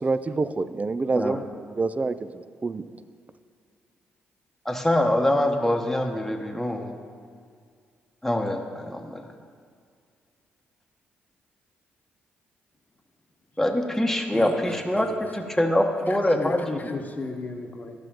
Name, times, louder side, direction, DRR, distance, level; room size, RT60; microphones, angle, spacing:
voice 1, 0.0-1.4 1.8-2.1 2.6-2.8, right 3 dB, 30° right, 13 dB, 0.4 m, -26 dB
voice 2, 4.6-6.9 8.2-9.2 13.6-16.9, left 1 dB, 5° left, 3 dB, 1.1 m, -24 dB
voice 3, 14.3-15.4 16.0-17.9, left 3 dB, 35° left, 4 dB, 1.1 m, -35 dB
13.5 x 6.2 x 2.9 m, 2.2 s
hypercardioid pair, 40°, 5 cm